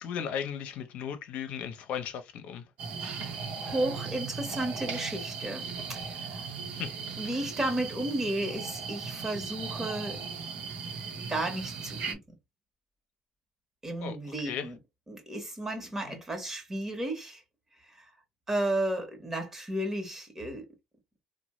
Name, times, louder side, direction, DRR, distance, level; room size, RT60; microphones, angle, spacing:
voice 1, 0.0-2.6 6.7-6.9 14.0-14.7 16.1-16.2, left 8 dB, 70° left, 0.7 m, -36 dB
sound 1, 2.8-12.1, right 5 dB, 70° right, 0.9 m, -37 dB
voice 2, 3.6-6.5 7.2-10.2 11.3-12.2 13.8-14.8 15.1-17.4 17.8-18.1 18.5-20.7, right 1 dB, 20° right, 1.1 m, -33 dB
3.0 x 2.2 x 3.0 m
cardioid pair, 95°, 2 cm